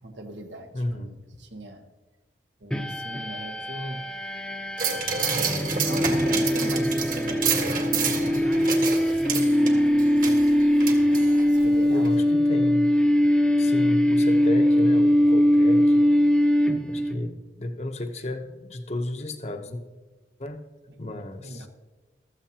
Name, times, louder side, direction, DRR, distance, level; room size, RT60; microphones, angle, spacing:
voice 1, 0.0-1.8 2.6-4.1 5.8-10.0 10.8-12.3 20.9-21.0 21.4-21.7, right 1 dB, 85° right, 5 dB, 1.3 m, -40 dB
voice 2, 0.7-1.1 11.9-12.9 13.6-16.0 16.9-19.8 20.4-20.6 21.0-21.7, left 1 dB, 35° left, 6 dB, 0.8 m, -32 dB
sound 1, 2.7-17.2, equal, 5° left, 0.7 m, -21 dB
sound 2, 4.8-11.7 12.0-12.1, right 5 dB, 50° right, 1.6 m, -29 dB
15.0 x 13.5 x 2.9 m, 1.2 s
head